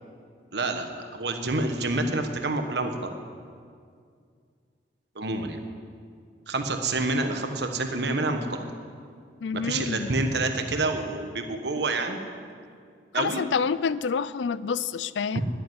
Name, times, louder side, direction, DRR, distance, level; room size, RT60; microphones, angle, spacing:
voice 1, 0.5-3.1 5.1-5.6 6.5-8.6 9.5-12.2 13.1-13.4 15.3-15.4, right 2 dB, 70° right, 6 dB, 1.3 m, -28 dB
voice 2, 9.4-10.1 13.2-15.4, left 6 dB, 90° left, 17 dB, 0.4 m, -28 dB
10.5 x 9.6 x 9.5 m, 2.2 s
head